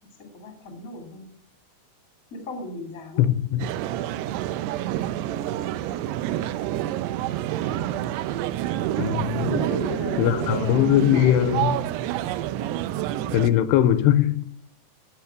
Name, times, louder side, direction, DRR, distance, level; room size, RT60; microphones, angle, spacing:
voice 1, 0.2-1.3 2.3-3.2 9.6-11.1, left 2 dB, 25° left, 2.0 m, -36 dB
voice 2, 3.2-3.7 9.0-9.7 10.2-11.8 13.3-14.4, left 11 dB, 85° left, 2.7 m, -20 dB
sound 1, 3.6-13.5, right 13 dB, 85° right, 2.7 m, -28 dB
11.5 x 7.2 x 8.1 m
omnidirectional pair, 4.9 m